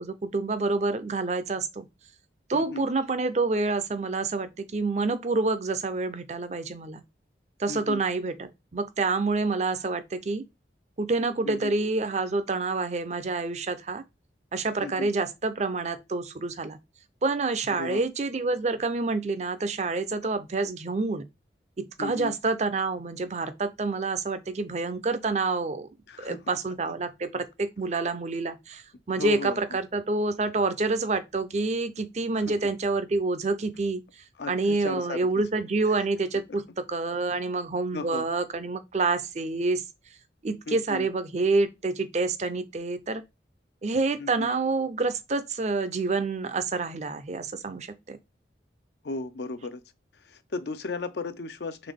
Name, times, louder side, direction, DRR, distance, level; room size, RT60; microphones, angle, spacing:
voice 1, 0.0-1.9 2.5-7.0 7.6-10.4 11.0-14.0 14.5-16.8 17.2-21.2 22.0-25.9 26.2-34.0 34.5-36.6 36.9-39.8 40.4-43.2 43.8-48.2, right 3 dB, 40° right, 0.5 m, -28 dB
voice 2, 2.5-2.9 7.7-8.0 11.4-11.7 14.8-15.1 17.7-18.0 22.0-22.3 26.1-26.5 29.1-29.6 32.4-32.7 34.4-35.3 36.5-36.6 37.9-38.3 40.7-41.1 44.2-44.5 49.0-49.8 50.1-51.9, left 3 dB, 65° left, 0.5 m, -35 dB
3.9 x 3.5 x 3.5 m
head